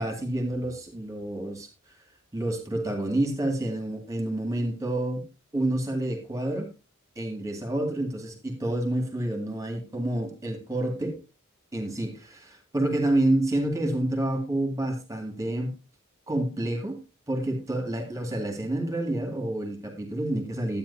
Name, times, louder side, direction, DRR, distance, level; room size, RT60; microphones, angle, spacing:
voice 1, 0.0-1.7 2.3-5.2 5.5-6.7 7.2-11.1 11.7-15.7 16.3-17.0 17.3-20.8, right 1 dB, 15° right, 4 dB, 2.1 m, -28 dB
12.0 x 9.2 x 2.7 m, 0.28 s
head